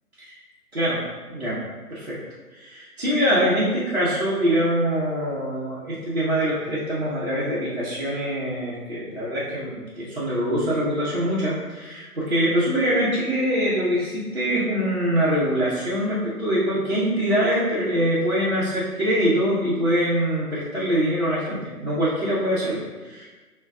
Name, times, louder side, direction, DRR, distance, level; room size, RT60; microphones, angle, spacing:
voice 1, 0.7-1.0 1.3-1.6 1.9-2.2 2.5-23.3, equal, 45° right, -10 dB, 0.7 m, -24 dB
5.8 x 2.2 x 2.3 m, 1.3 s
figure-of-eight pair, 160°, 47 cm